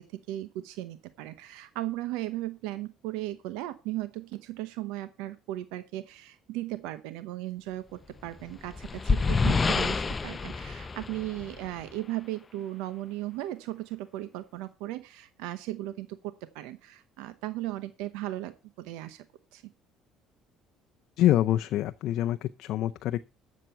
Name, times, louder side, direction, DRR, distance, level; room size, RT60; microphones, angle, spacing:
voice 1, 0.0-19.2 19.5-19.6, right 15 dB, 90° right, 0.8 m, -36 dB
sound 1, 8.3-11.9, left 4 dB, 25° left, 0.7 m, -28 dB
voice 2, 21.2-23.3, left 13 dB, 65° left, 0.5 m, -26 dB
12.5 x 7.4 x 5.7 m
cardioid pair, 110°, 0 cm